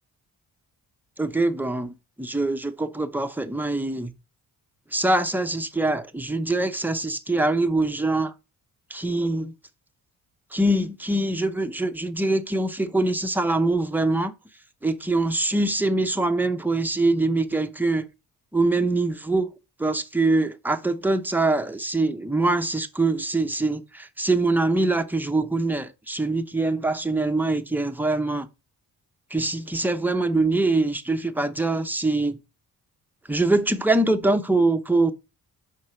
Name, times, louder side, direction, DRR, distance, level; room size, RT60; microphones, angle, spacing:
voice 1, 1.2-4.1 4.9-8.3 8.9-9.5 10.5-14.3 14.8-18.1 18.5-19.5 19.8-28.5 29.3-32.4 33.3-35.1, right 2 dB, 5° right, 0.8 m, -23 dB
5.8 x 4.7 x 5.6 m
cardioid pair, 85°, 38 cm